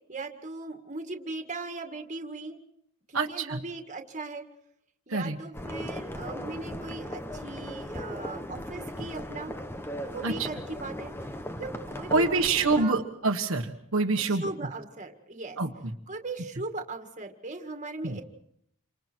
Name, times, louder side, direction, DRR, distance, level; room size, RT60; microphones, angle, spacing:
voice 1, 0.1-2.6 3.1-4.4 5.1-9.5 10.0-11.1 11.6-12.3 12.8-13.0 14.2-15.6 16.1-18.2, right 3 dB, 35° right, 4 dB, 2.1 m, -38 dB
voice 2, 3.1-3.6 5.1-5.4 10.2-10.5 12.1-14.5 15.6-15.9 18.0-18.2, right 3 dB, 65° right, 2 dB, 1.5 m, -26 dB
sound 1, 5.5-12.9, equal, 10° left, 1.2 m, -37 dB
29.5 x 26.0 x 4.6 m, 0.73 s
head